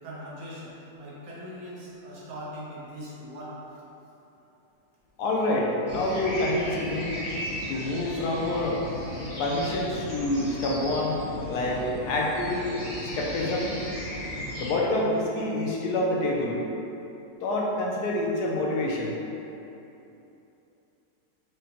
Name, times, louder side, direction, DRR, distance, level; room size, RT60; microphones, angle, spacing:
voice 1, 0.0-3.8, equal, 85° right, -7 dB, 1.5 m, -41 dB
voice 2, 5.2-7.2 7.7-8.8 9.4-11.2 11.5-12.6 13.1-13.7 14.6-16.6 17.4-19.2, left 1 dB, 75° left, -2 dB, 1.1 m, -27 dB
sound 1, 5.9-14.7, equal, 30° left, 0.7 m, -36 dB
5.1 x 2.2 x 2.8 m, 2.9 s
omnidirectional pair, 1.8 m